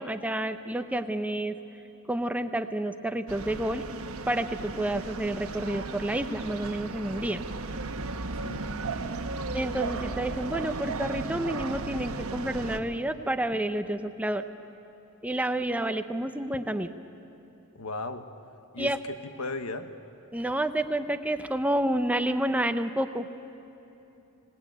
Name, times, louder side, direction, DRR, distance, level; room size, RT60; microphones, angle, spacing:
voice 1, 0.0-1.5 2.1-3.8 4.3-7.4 9.5-14.4 15.2-16.9 18.8-19.0 20.3-23.3, right 1 dB, 5° right, 9 dB, 0.7 m, -29 dB
sound 1, 3.3-12.8, right 3 dB, 80° right, 1.2 m, -35 dB
voice 2, 17.7-18.2 18.7-19.9, left 3 dB, 90° left, 8 dB, 1.3 m, -36 dB
25.0 x 19.0 x 9.4 m, 3.0 s
head